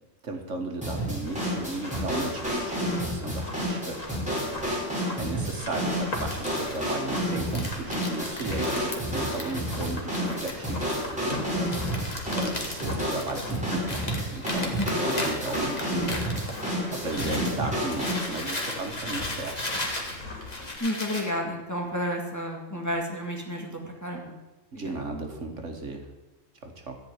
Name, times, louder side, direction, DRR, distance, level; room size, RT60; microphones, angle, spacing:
voice 1, 0.2-4.0 4.6-14.0 14.3-16.2 16.6-19.6 24.7-26.1 26.6-27.0, right 3 dB, 70° right, 3 dB, 1.9 m, -36 dB
sound 1, 0.8-18.3, equal, 5° right, 4.7 m, -30 dB
sound 2, 1.2-20.8, left 2 dB, 85° left, 3.0 m, -41 dB
Crumpling crinkling, 5.9-17.5 17.8-21.3, left 1 dB, 35° left, 2.1 m, -36 dB
voice 2, 14.8-15.1 20.8-24.3 24.7-24.9, equal, 15° left, 0 dB, 2.0 m, -31 dB
14.0 x 5.5 x 9.5 m, 1.1 s
omnidirectional pair, 1.3 m